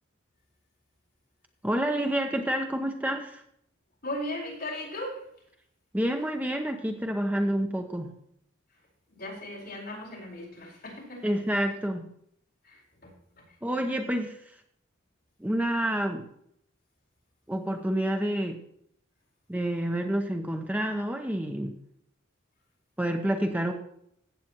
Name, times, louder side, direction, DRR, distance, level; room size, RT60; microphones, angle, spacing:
voice 1, 1.6-3.4 5.9-8.1 11.2-12.1 13.6-14.3 15.4-16.2 17.5-18.6 19.5-21.7 23.0-23.7, right 1 dB, 10° right, 4 dB, 0.8 m, -28 dB
voice 2, 4.0-5.2 9.1-11.3 12.6-13.1, left 1 dB, 50° left, -2 dB, 4.3 m, -37 dB
15.0 x 8.5 x 3.0 m, 0.70 s
head